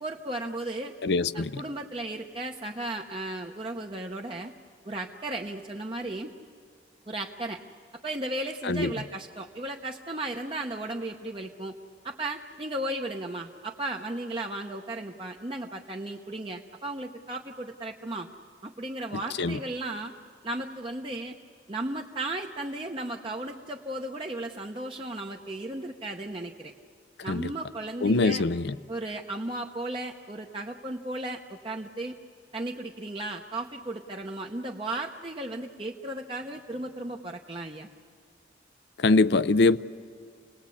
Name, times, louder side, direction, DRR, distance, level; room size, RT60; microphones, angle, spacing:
voice 1, 0.0-0.9 1.3-4.5 4.9-6.3 7.1-7.6 8.0-11.7 12.0-18.3 18.6-20.1 20.4-21.4 21.7-26.7 27.2-28.4 28.9-32.2 32.5-37.9, right 2 dB, 30° right, 0.8 m, -35 dB
voice 2, 1.0-1.6 8.6-8.9 19.4-19.6 27.3-27.5 28.0-28.8 39.0-39.8, left 3 dB, 70° left, 0.5 m, -23 dB
29.5 x 19.5 x 8.5 m
head